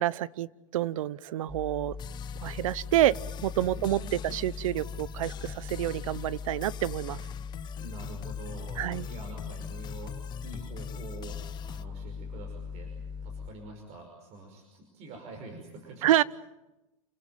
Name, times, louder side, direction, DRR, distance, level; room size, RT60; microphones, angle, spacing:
voice 1, 0.0-2.0 2.4-3.2 3.4-7.2 8.8-9.1 16.0-16.2, right 13 dB, 75° right, 21 dB, 0.9 m, -28 dB
sound 1, 1.5-13.5, left 5 dB, 5° right, 1.3 m, -40 dB
sound 2, 2.0-11.9, left 10 dB, 25° left, 0.9 m, -45 dB
voice 2, 3.7-4.8 7.8-16.2, right 2 dB, 40° right, 3 dB, 5.6 m, -46 dB
29.0 x 18.5 x 9.1 m, 1.0 s
supercardioid pair, 140°, 17 cm